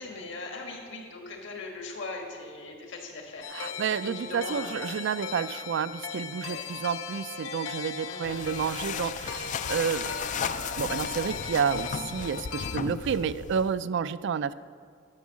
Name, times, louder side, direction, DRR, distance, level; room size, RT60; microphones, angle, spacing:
voice 1, 0.0-4.9 6.4-6.7 8.0-8.5, left 3 dB, 65° left, 1 dB, 1.6 m, -40 dB
sound 1, 3.4-12.8, left 6 dB, 85° left, 0.6 m, -38 dB
voice 2, 3.5-14.5, right 7 dB, 65° right, 15 dB, 0.3 m, -30 dB
sound 2, 8.2-13.8, left 7 dB, 40° left, 0.3 m, -35 dB
10.5 x 6.2 x 7.5 m, 2.1 s
head